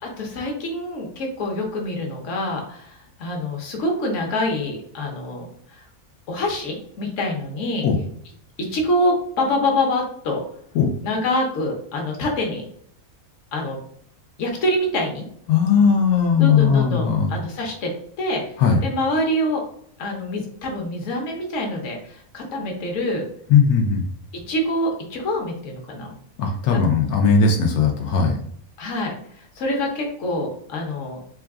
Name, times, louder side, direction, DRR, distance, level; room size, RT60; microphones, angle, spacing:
voice 1, 0.0-5.5 5.7-5.8 6.3-7.9 8.6-10.4 11.0-12.6 13.5-13.8 14.4-15.2 16.4-17.9 18.2-18.4 18.8-19.6 20.0-23.2 24.3-26.1 26.7-26.8 28.8-31.2, left 1 dB, 60° left, 1 dB, 1.2 m, -25 dB
voice 2, 15.5-17.3 18.6-18.8 23.5-24.0 26.4-28.4, left 6 dB, 85° left, 2 dB, 1.1 m, -18 dB
3.8 x 2.3 x 3.5 m, 0.65 s
omnidirectional pair, 1.5 m